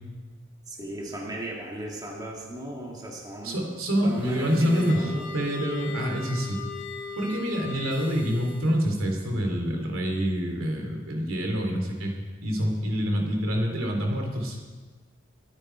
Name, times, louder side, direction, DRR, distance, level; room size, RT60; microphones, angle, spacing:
voice 1, 0.7-5.3, right 1 dB, 20° right, -2 dB, 2.1 m, -36 dB
voice 2, 3.4-6.6 7.2-12.1 12.4-14.6, equal, 90° right, 2 dB, 3.0 m, -26 dB
sound 1, 4.0-8.8, left 5 dB, 85° left, 2.6 m, -39 dB
23.0 x 9.8 x 4.5 m, 1.4 s
head